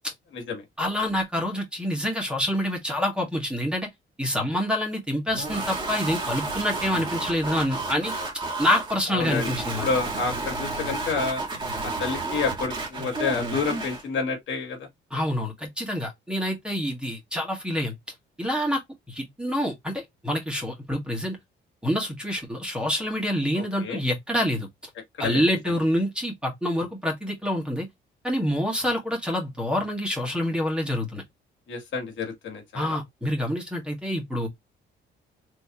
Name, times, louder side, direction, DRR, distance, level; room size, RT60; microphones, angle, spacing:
voice 1, 0.8-3.9 4.2-8.1 8.6-9.9 15.1-17.9 18.4-18.8 19.1-21.4 21.8-24.7 25.2-27.9 28.2-31.2 32.7-34.5, equal, 5° right, 1.7 m, -27 dB
sound 1, 5.3-14.0, right 3 dB, 20° right, 1.7 m, -31 dB
voice 2, 9.1-9.5 9.8-11.4 11.8-14.8 23.6-24.0 25.2-25.4 31.7-33.0, left 4 dB, 70° left, 1.8 m, -29 dB
3.4 x 3.1 x 2.9 m
cardioid pair, 90°, 20 cm